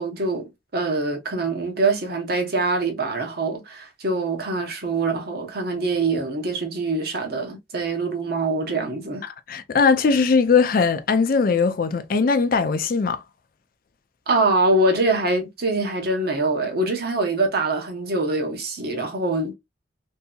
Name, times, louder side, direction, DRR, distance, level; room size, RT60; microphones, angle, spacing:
voice 1, 0.0-9.2 14.3-19.5, right 2 dB, 60° right, 0.9 m, -24 dB
voice 2, 9.5-13.2, left 5 dB, 55° left, 0.4 m, -20 dB
2.7 x 2.7 x 2.3 m
head